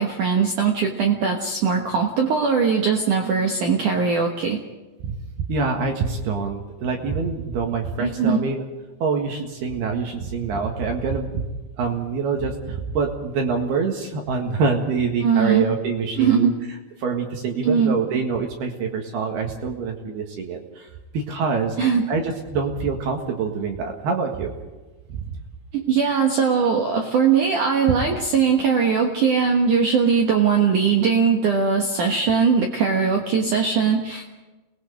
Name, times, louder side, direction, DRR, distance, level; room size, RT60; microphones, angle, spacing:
voice 1, 0.0-4.6 8.0-8.5 15.2-15.7 16.2-16.6 17.6-18.0 21.8-22.1 25.7-34.3, right 6 dB, 75° right, 2 dB, 1.8 m, -20 dB
voice 2, 5.5-8.6 9.0-11.5 11.8-16.5 17.0-20.9 21.1-24.5 25.1-25.3, right 5 dB, 60° right, 2 dB, 3.3 m, -25 dB
29.0 x 20.5 x 5.1 m, 1.2 s
omnidirectional pair, 5.9 m